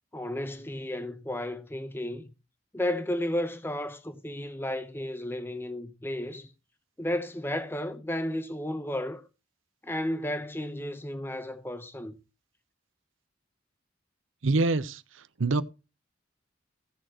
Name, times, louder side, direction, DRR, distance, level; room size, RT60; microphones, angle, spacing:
voice 1, 0.1-2.3 2.7-6.5 7.0-9.2 9.8-12.2, left 1 dB, 10° left, 0.8 m, -33 dB
voice 2, 14.4-15.0 15.4-15.6, right 3 dB, 85° right, 0.7 m, -24 dB
16.5 x 6.6 x 2.9 m
head